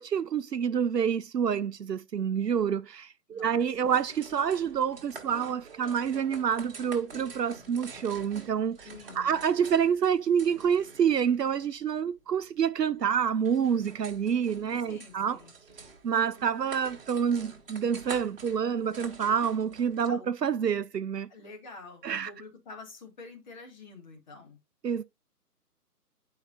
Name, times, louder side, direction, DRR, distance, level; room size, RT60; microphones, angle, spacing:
voice 1, 0.0-8.9 9.2-15.4 16.0-21.3 22.0-22.3 24.8-25.0, right 7 dB, 85° right, 0.6 m, -28 dB
voice 2, 3.3-3.9 8.8-9.4 14.9-15.5 20.1-20.3 21.3-24.6, left 3 dB, 30° left, 2.1 m, -48 dB
sound 1, 3.6-20.1, right 4 dB, 35° right, 1.7 m, -48 dB
10.5 x 4.8 x 2.8 m
figure-of-eight pair, 145°, 47 cm